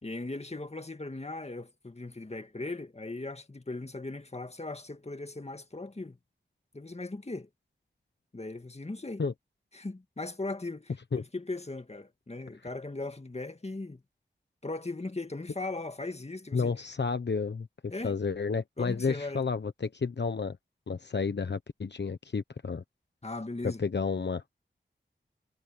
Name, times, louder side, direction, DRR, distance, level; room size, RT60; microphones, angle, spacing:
voice 1, 0.0-6.2 6.7-7.5 8.3-9.2 9.7-14.0 14.6-16.7 17.9-18.2 18.8-19.4 23.2-23.8, left 2 dB, 35° left, 2.1 m, -38 dB
voice 2, 16.5-20.6 20.9-22.8 23.6-24.5, left 5 dB, 65° left, 1.1 m, -31 dB
cardioid pair, 40°, 20 cm